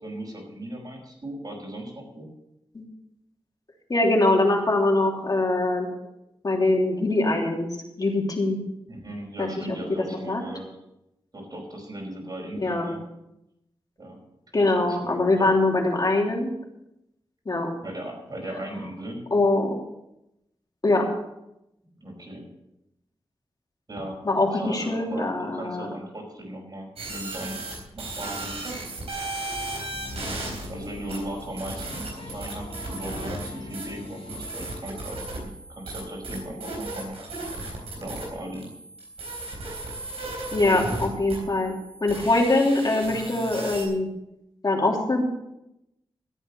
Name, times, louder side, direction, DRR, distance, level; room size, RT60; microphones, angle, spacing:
voice 1, 0.0-2.3 8.9-10.7 11.3-13.0 14.0-14.2 14.7-15.5 17.8-19.2 22.0-22.5 23.9-24.2 24.5-27.6 27.9-28.6 30.1-37.2 37.6-37.7 38.0-38.7, right 1 dB, 45° right, 0 dB, 5.2 m, -37 dB
voice 2, 3.9-5.9 6.4-7.7 8.0-8.6 9.4-9.8 10.3-10.4 12.6-12.9 14.5-16.5 17.4-17.7 19.3-19.7 20.8-21.1 24.2-25.9 40.5-41.7 42.0-44.1 44.6-45.2, left 2 dB, 40° left, 0 dB, 3.2 m, -23 dB
sound 1, 27.0-43.8, right 2 dB, 85° right, 3.9 m, -36 dB
sound 2, 29.5-34.5, left 2 dB, 65° left, 2.0 m, -42 dB
13.5 x 8.8 x 7.1 m, 0.86 s
wide cardioid pair, 90°, 10 cm